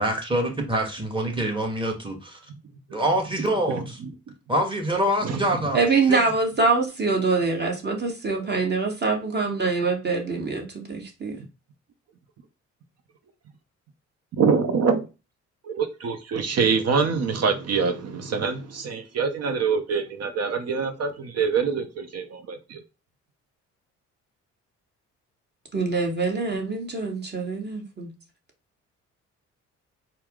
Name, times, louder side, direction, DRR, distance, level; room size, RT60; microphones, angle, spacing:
voice 1, 0.0-2.4 2.9-4.0 4.5-5.8 6.1-6.2, right 1 dB, 15° right, 1.2 m, -25 dB
voice 2, 5.2-5.7 14.4-15.1 15.6-22.8, right 5 dB, 55° right, 0.6 m, -25 dB
voice 3, 5.7-11.4 25.7-28.1, right 4 dB, 35° right, 1.2 m, -24 dB
4.2 x 2.0 x 3.5 m
cardioid pair, 90°, 30 cm